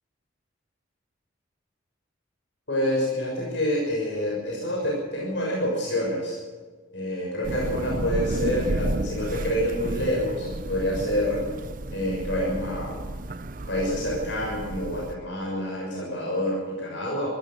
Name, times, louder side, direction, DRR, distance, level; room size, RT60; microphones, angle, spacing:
voice 1, 2.7-6.4 6.9-11.4 11.9-13.0 13.7-17.3, equal, 65° left, -4 dB, 6.6 m, -27 dB
Thunder / Rain, 7.4-15.1, right 2 dB, 45° right, 0.8 m, -32 dB
24.5 x 14.5 x 7.6 m, 1.5 s
head